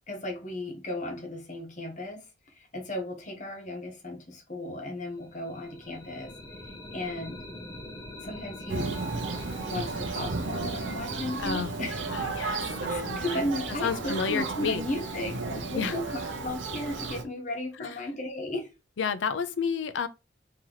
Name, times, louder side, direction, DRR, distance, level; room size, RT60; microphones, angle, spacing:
voice 1, 0.1-6.3 6.9-7.4 8.2-8.9 9.6-12.1 12.8-18.7, left 1 dB, 40° left, 1.0 m, -35 dB
sound 1, 5.2-15.0, left 1 dB, 20° left, 0.5 m, -45 dB
Thunder, 8.7-17.2, right 3 dB, 70° right, 0.7 m, -33 dB
sound 2, 11.1-17.0, left 1 dB, 10° right, 1.2 m, -51 dB
voice 2, 11.4-11.7 12.1-13.4 13.8-14.8 15.8-16.0 17.8-17.9 19.0-20.1, left 6 dB, 70° left, 0.5 m, -31 dB
3.9 x 2.9 x 3.0 m
head